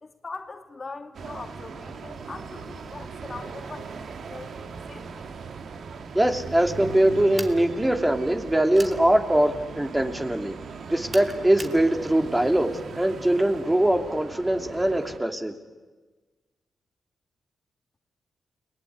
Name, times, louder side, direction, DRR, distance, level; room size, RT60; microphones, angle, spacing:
voice 1, 0.0-4.5 4.9-5.3, left 3 dB, 40° left, 5 dB, 2.5 m, -41 dB
sound 1, 1.1-15.2, right 5 dB, 70° right, 2.0 m, -39 dB
voice 2, 6.1-10.5 10.9-15.5, right 1 dB, 15° right, 5 dB, 2.8 m, -22 dB
sound 2, 7.4-7.6 8.8-9.0 11.1-11.8, right 2 dB, 35° right, 2.8 m, -38 dB
30.0 x 19.5 x 9.7 m, 1.3 s
cardioid pair, 65°, 0 cm